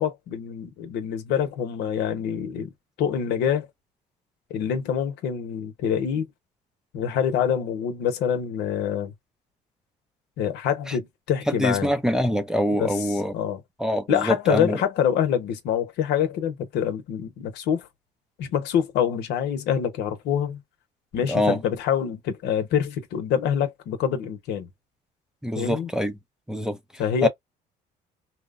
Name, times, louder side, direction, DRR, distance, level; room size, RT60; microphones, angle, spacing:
voice 1, 0.0-2.7 3.0-3.7 4.5-6.3 6.9-9.1 10.4-11.9 12.8-13.6 14.1-17.9 18.4-20.6 21.1-24.7 25.6-25.9 27.0-27.3, left 8 dB, 80° left, 0.9 m, -26 dB
voice 2, 11.5-13.3 13.8-14.8 21.3-21.6 25.4-26.1 26.5-26.8 27.2-27.3, equal, 5° right, 0.5 m, -24 dB
2.8 x 2.1 x 2.4 m
cardioid pair, 110°, 17 cm